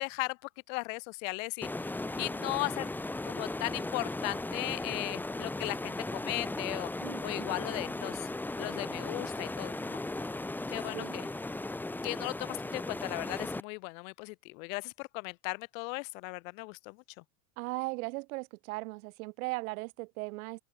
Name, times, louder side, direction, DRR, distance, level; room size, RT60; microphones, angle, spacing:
voice 1, 0.0-1.7 2.2-2.9 3.2-6.9 7.2-8.3 8.6-10.0 10.7-11.3 12.0-17.2, left 30 dB, 55° left, 3.4 m, -37 dB
sound 1, 1.6-13.6, left 2 dB, 5° left, 2.0 m, -37 dB
voice 2, 7.0-7.6 10.9-11.2 17.6-20.6, right 24 dB, 65° right, 3.7 m, -38 dB
open air
cardioid pair, 175°, 46 cm